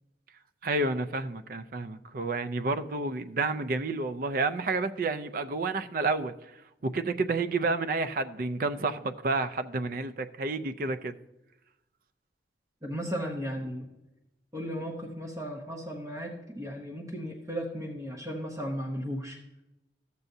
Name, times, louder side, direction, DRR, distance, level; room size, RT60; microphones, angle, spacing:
voice 1, 0.6-6.3 6.8-11.1, right 3 dB, 50° right, 11 dB, 0.4 m, -30 dB
voice 2, 12.8-13.9 14.5-19.4, equal, 20° right, -1 dB, 0.8 m, -35 dB
13.5 x 6.8 x 2.7 m, 0.94 s
head